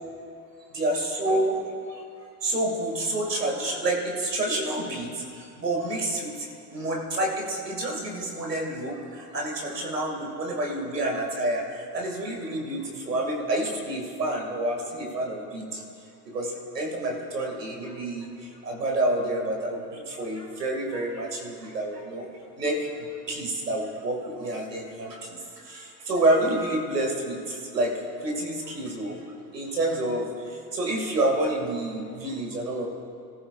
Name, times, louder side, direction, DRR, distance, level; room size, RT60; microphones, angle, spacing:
voice 1, 0.7-1.6 1.9-2.0 2.4-15.8 16.3-22.3 22.6-27.9 28.2-29.2 29.5-32.9, right 1 dB, 90° right, 0 dB, 2.4 m, -28 dB
25.0 x 14.0 x 2.5 m, 2.5 s
hypercardioid pair, 75°, 47 cm